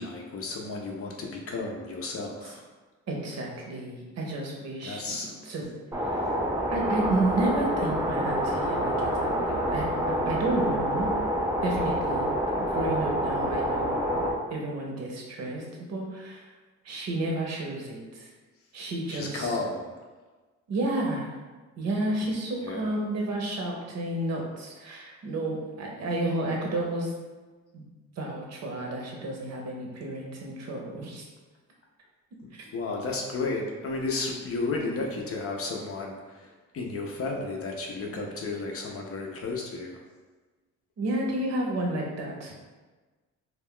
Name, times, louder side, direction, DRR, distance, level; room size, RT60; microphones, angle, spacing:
voice 1, 0.0-2.6 4.8-5.3 19.1-19.9 22.6-22.9 32.4-40.0, left 3 dB, 50° left, 0 dB, 0.5 m, -33 dB
voice 2, 3.1-5.2 5.4-5.7 6.0-6.4 6.7-11.1 11.6-13.9 14.5-16.5 16.8-18.3 18.7-19.6 20.7-21.3 21.8-27.1 27.7-27.8 28.2-31.3 32.5-32.7 41.0-42.5, right 2 dB, 60° right, -1 dB, 0.7 m, -31 dB
sound 1, 5.9-14.3, equal, 10° right, 0.4 m, -27 dB
2.3 x 2.1 x 3.6 m, 1.3 s
cardioid pair, 90°, 30 cm